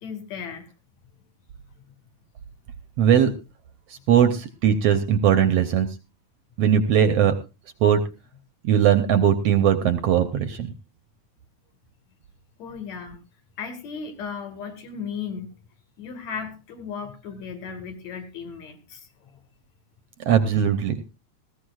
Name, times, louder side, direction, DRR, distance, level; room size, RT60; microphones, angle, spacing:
voice 1, 0.0-0.7 12.6-13.2 13.6-15.5 16.0-19.1, left 6 dB, 65° left, 6 dB, 2.9 m, -35 dB
voice 2, 3.0-3.3 4.1-5.9 6.6-7.3 7.8-8.0 8.6-10.7 20.3-21.0, right 8 dB, 70° right, 10 dB, 1.6 m, -19 dB
19.0 x 15.5 x 2.4 m, 0.28 s
omnidirectional pair, 3.5 m